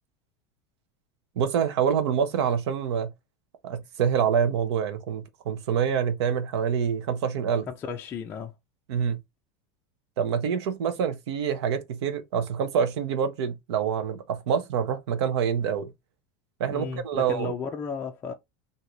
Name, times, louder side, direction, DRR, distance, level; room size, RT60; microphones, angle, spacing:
voice 1, 1.4-3.1 3.6-7.7 8.9-9.2 10.2-15.9 16.6-17.5, right 7 dB, 80° right, 1.0 m, -26 dB
voice 2, 7.7-8.5 16.7-18.3, left 5 dB, 15° left, 0.4 m, -34 dB
4.3 x 2.8 x 3.1 m
supercardioid pair, 170°, 14 cm